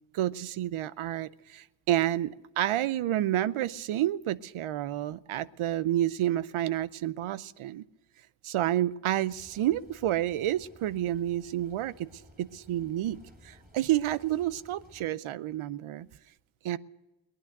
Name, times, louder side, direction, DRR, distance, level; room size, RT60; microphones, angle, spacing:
voice 1, 0.1-7.8 8.4-12.1 12.4-16.1 16.6-16.8, right 13 dB, 80° right, 18 dB, 0.7 m, -29 dB
sound 1, 9.3-15.1, equal, 20° right, 2.7 m, -57 dB
19.0 x 11.0 x 6.6 m, 1.1 s
cardioid pair, 45°, 49 cm